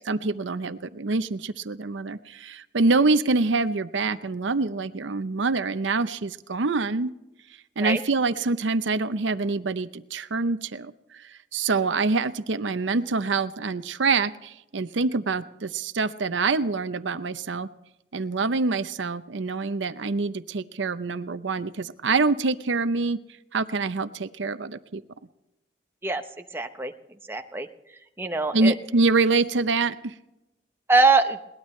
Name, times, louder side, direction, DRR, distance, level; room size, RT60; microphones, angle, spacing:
voice 1, 0.1-7.1 7.8-17.7 18.1-23.2 23.5-25.0 28.5-30.1, right 3 dB, 80° right, 12 dB, 0.7 m, -25 dB
voice 2, 26.5-26.9 27.3-27.7 28.2-28.7 30.9-31.4, right 3 dB, 10° right, 6 dB, 0.8 m, -22 dB
21.5 x 19.0 x 3.2 m, 0.93 s
head